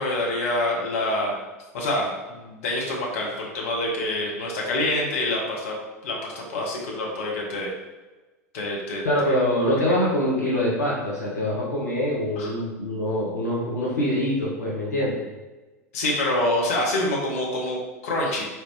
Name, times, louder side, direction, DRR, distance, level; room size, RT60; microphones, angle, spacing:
voice 1, 0.0-1.4 1.7-5.7 6.0-7.7 8.5-9.0 12.4-12.5 15.9-17.8 18.0-18.5, left 1 dB, 55° left, -3 dB, 1.1 m, -26 dB
voice 2, 9.0-15.2, equal, 75° left, -6 dB, 1.0 m, -24 dB
4.5 x 3.3 x 3.1 m, 1.2 s
figure-of-eight pair, 80°, 9 cm